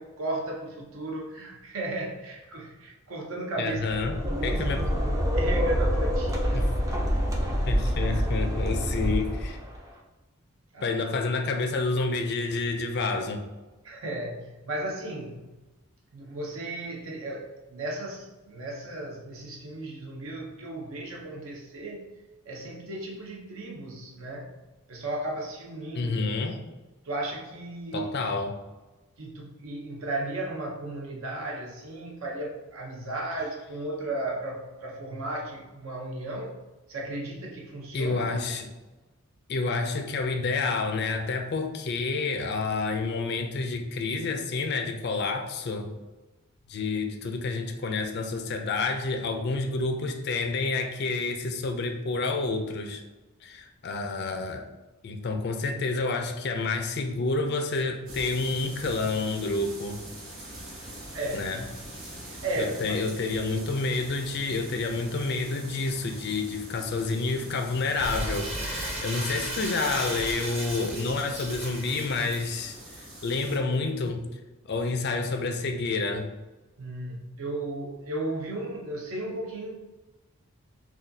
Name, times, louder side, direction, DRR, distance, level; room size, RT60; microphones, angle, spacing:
voice 1, 0.0-3.9 4.1-6.8 10.7-11.0 13.8-15.5 16.1-22.1 22.4-24.6 24.9-26.2 27.0-28.2 29.2-36.5 36.9-38.3 61.1-61.6 62.3-63.0 76.8-79.9, right 2 dB, 65° right, -1 dB, 0.7 m, -35 dB
voice 2, 3.6-4.8 6.5-6.7 7.7-9.6 10.8-13.4 25.9-26.6 27.9-28.5 37.9-38.7 39.5-45.9 46.7-53.0 53.4-54.7 55.0-60.0 61.3-61.7 62.6-74.2 74.7-76.3, left 3 dB, 45° left, 5 dB, 0.4 m, -29 dB
sound 1, 3.8-9.8, equal, 15° right, 0.4 m, -26 dB
sound 2, 58.1-73.6, right 1 dB, 85° right, 1.4 m, -44 dB
Crumpling crinkling, 68.0-72.4, right 1 dB, 30° right, 1.0 m, -35 dB
6.0 x 2.3 x 2.7 m, 1.1 s
head